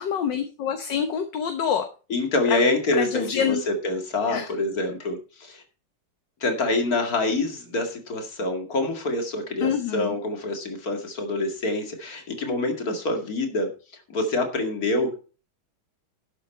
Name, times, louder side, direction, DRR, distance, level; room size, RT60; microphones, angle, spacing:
voice 1, 0.0-1.8 2.5-2.6 3.0-3.6 4.3-4.5 9.6-10.2, left 8 dB, 65° left, 6 dB, 1.7 m, -26 dB
voice 2, 2.1-5.6 6.4-13.7 14.1-15.2, left 2 dB, 50° left, 4 dB, 2.7 m, -26 dB
12.0 x 8.4 x 4.3 m, 0.35 s
omnidirectional pair, 2.1 m